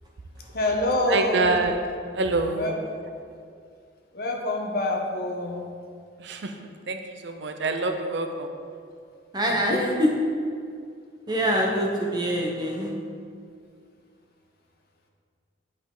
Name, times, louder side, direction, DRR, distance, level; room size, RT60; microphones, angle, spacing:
voice 1, 0.5-1.6 2.5-2.7 4.1-5.6 9.7-9.9, left 2 dB, 50° left, 1 dB, 0.9 m, -26 dB
voice 2, 1.1-1.9 2.1-2.8 6.2-8.5, right 3 dB, 65° right, 6 dB, 0.6 m, -26 dB
voice 3, 9.3-10.1 11.3-12.9, equal, 20° right, -1 dB, 0.9 m, -24 dB
9.0 x 5.3 x 3.8 m, 2.2 s
head